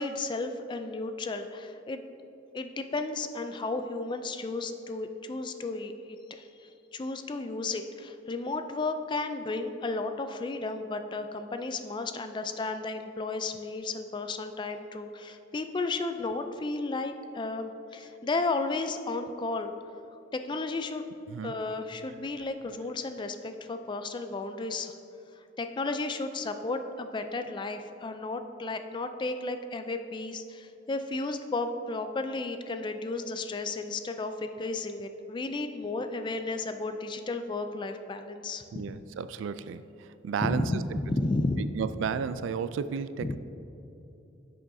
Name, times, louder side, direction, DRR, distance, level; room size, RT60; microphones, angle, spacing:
voice 1, 0.0-2.0 2.5-19.7 20.3-21.0 21.4-24.9 25.4-38.8 40.4-41.7 43.2-43.4, left 3 dB, 25° left, 8 dB, 0.3 m, -33 dB
voice 2, 38.7-39.8 40.2-40.6 41.8-43.4, right 6 dB, 80° right, 14 dB, 0.3 m, -32 dB
10.5 x 6.3 x 2.7 m, 2.9 s
head